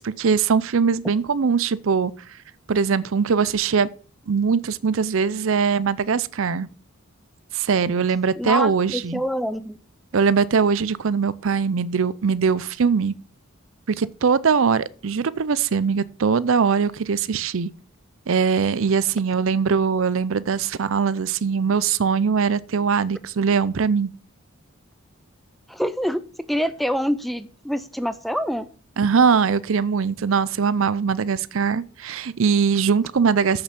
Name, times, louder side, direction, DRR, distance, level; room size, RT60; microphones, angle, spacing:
voice 1, 0.0-2.1 2.7-3.9 4.3-6.7 7.5-9.2 10.1-13.1 13.9-17.7 18.3-24.1 29.0-33.6, right 6 dB, 65° right, 0.5 m, -21 dB
voice 2, 8.4-9.8 25.7-28.7, equal, ahead, 0.4 m, -26 dB
8.1 x 6.8 x 6.8 m
head